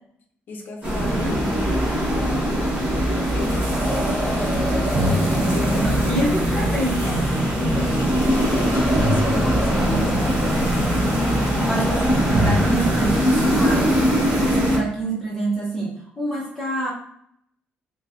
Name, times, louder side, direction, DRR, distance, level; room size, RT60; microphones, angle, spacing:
voice 1, 0.5-1.8 2.1-6.2 7.0-7.2 7.5-10.3 11.5-11.8, left 2 dB, 50° left, 1 dB, 0.7 m, -35 dB
sound 1, 0.8-14.8, equal, 20° right, 1.2 m, -21 dB
voice 2, 1.0-1.4 5.7-7.0 11.5-14.0 14.4-16.9, right 2 dB, 10° left, -5 dB, 1.0 m, -27 dB
sound 2, 4.9-12.1 12.3-14.4, equal, 40° right, 0.5 m, -29 dB
3.1 x 2.2 x 2.8 m, 0.67 s
cardioid pair, 125°, 4 cm